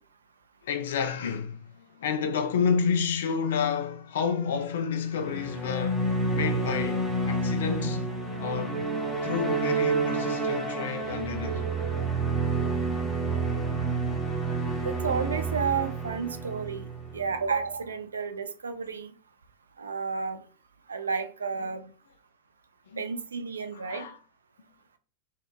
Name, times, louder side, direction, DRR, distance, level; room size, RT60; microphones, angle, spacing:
voice 1, 0.6-8.1 8.4-8.9 9.2-11.7 22.9-23.1 23.7-24.2, left 6 dB, 60° left, 0.3 m, -30 dB
sound 1, 5.1-17.6, right 3 dB, 10° left, 0.7 m, -29 dB
voice 2, 14.8-16.9 17.1-19.1 19.8-20.4 20.9-21.8 23.0-24.0, right 5 dB, 70° right, 0.3 m, -31 dB
2.8 x 2.0 x 2.2 m
figure-of-eight pair, 90°, 0 cm